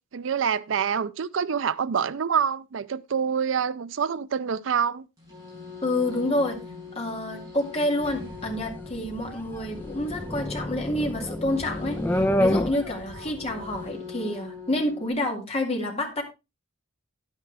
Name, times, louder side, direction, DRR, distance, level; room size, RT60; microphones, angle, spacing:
voice 1, 0.1-5.1, right 7 dB, 70° right, 0.4 m, -26 dB
sound 1, 5.2-15.1, left 5 dB, 15° right, 6.8 m, -42 dB
voice 2, 5.8-6.6 6.9-16.2, left 1 dB, 30° left, 2.3 m, -28 dB
sound 2, 8.0-13.9, left 1 dB, 10° left, 0.5 m, -29 dB
10.5 x 9.5 x 3.3 m
head